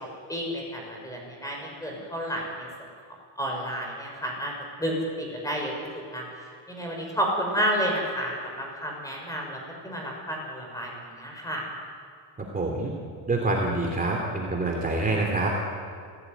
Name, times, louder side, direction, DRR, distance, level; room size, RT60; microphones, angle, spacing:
voice 1, 0.3-2.7 3.4-4.5 4.8-6.2 6.7-11.6, equal, 10° left, 0 dB, 6.4 m, -31 dB
voice 2, 12.4-12.9 13.3-15.5, right 2 dB, 20° right, 0 dB, 3.2 m, -26 dB
26.0 x 17.0 x 9.4 m, 2.2 s
cardioid pair, 140°, 41 cm